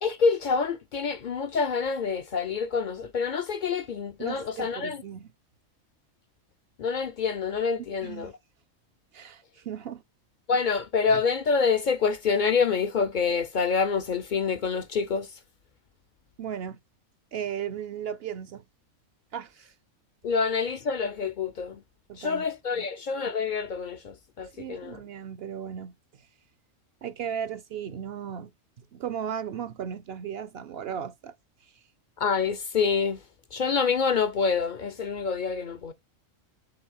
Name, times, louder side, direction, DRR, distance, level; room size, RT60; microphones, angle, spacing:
voice 1, 0.0-5.0 6.8-8.3 10.5-15.3 20.2-21.8 22.2-25.0 32.2-33.2 33.5-35.9, left 5 dB, 60° left, 0.5 m, -27 dB
voice 2, 4.2-5.3 8.0-8.3 9.1-10.0 16.4-16.8 17.3-18.6 19.3-19.7 22.1-22.4 22.7-22.8 24.5-25.9 27.0-28.5 28.9-31.3, right 8 dB, 60° right, 0.7 m, -36 dB
6.2 x 4.0 x 6.2 m
omnidirectional pair, 1.4 m